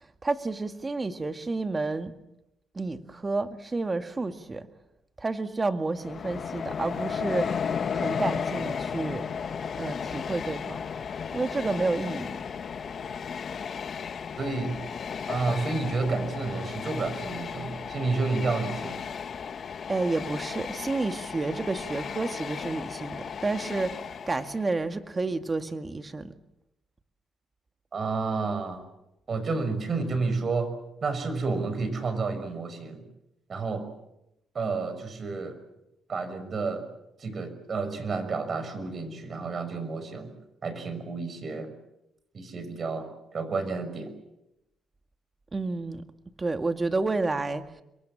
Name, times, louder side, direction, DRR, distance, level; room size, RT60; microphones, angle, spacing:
voice 1, 0.2-2.1 2.7-4.7 5.2-7.6 7.9-9.3 9.8-10.8 11.3-12.4 19.9-26.3 45.5-46.0 46.4-47.6, right 3 dB, 25° right, 8 dB, 2.0 m, -30 dB
Train, 5.9-24.8, left 6 dB, 50° left, 1.4 m, -34 dB
voice 2, 14.4-14.8 15.3-19.0 27.9-28.8 29.3-30.7 31.0-33.0 33.5-33.9 34.5-35.6 36.1-36.8 37.2-40.3 40.6-41.7 42.3-43.1 43.3-44.1, right 4 dB, 45° right, 10 dB, 5.8 m, -30 dB
27.5 x 22.5 x 7.4 m, 0.88 s
cardioid pair, 90°, 0 cm